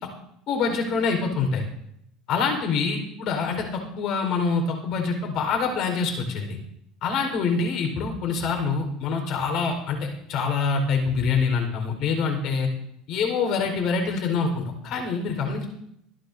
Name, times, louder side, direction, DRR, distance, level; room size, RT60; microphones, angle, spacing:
voice 1, 0.5-1.6 2.3-6.6 7.0-12.7 13.1-15.6, left 5 dB, 55° left, 4 dB, 4.6 m, -25 dB
25.0 x 11.5 x 2.8 m, 0.76 s
supercardioid pair, 125°, 0 cm